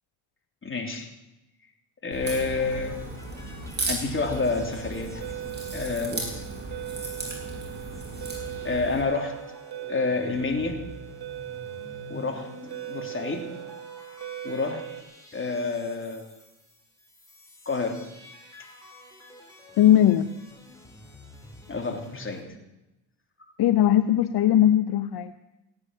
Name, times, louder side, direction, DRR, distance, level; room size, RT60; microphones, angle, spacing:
voice 1, 0.6-1.1 2.0-3.0 3.9-5.3 5.7-6.4 8.6-9.3 9.9-10.8 12.1-12.5 12.9-13.4 14.4-14.8 15.3-16.3 17.6-18.0 21.7-22.4 23.4-23.5, left 4 dB, 25° left, 3 dB, 3.2 m, -28 dB
Crack, 2.1-9.0, right 2 dB, 20° right, 6.9 m, -36 dB
sound 1, 2.6-7.0 7.2-7.3 7.5-22.4, left 1 dB, 5° left, 4.3 m, -49 dB
sound 2, 4.2-15.0, right 13 dB, 55° right, 1.6 m, -39 dB
voice 2, 19.8-20.3 23.6-25.3, left 11 dB, 55° left, 12 dB, 0.8 m, -19 dB
16.5 x 9.8 x 7.5 m, 0.97 s
supercardioid pair, 80°, 45 cm